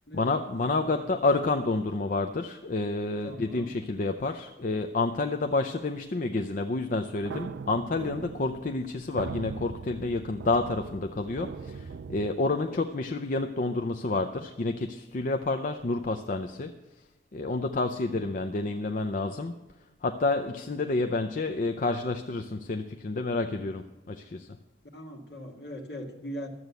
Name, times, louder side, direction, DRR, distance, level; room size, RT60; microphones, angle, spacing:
voice 1, 0.1-16.8 17.3-19.6 20.0-24.6, left 3 dB, 45° left, 6 dB, 0.5 m, -29 dB
voice 2, 0.7-1.1 3.2-3.7 12.5-12.8 17.9-18.2 21.0-21.3 24.8-26.5, equal, 65° left, 2 dB, 1.8 m, -42 dB
sound 1, 7.2-12.3, right 5 dB, 75° right, 0.4 m, -40 dB
12.5 x 7.8 x 8.1 m, 1.0 s
head